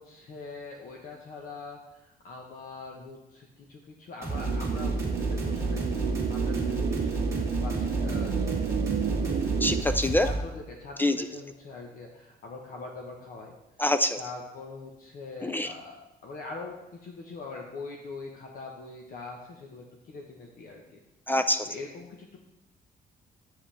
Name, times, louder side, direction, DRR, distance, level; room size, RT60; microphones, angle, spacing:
voice 1, 0.0-8.5 9.1-9.6 10.2-13.5 14.2-16.0 16.2-21.0 21.6-22.4, left 3 dB, 60° left, 0 dB, 1.2 m, -43 dB
sound 1, 4.2-10.4, right 2 dB, 15° right, 2.0 m, -30 dB
sound 2, 4.3-9.8, right 8 dB, 60° right, 0.7 m, -31 dB
voice 2, 9.6-10.3 11.0-11.3 13.8-14.2 15.4-15.7 21.3-21.7, left 1 dB, 10° left, 9 dB, 0.3 m, -25 dB
10.0 x 8.0 x 3.5 m, 0.98 s
cardioid pair, 155°, 17 cm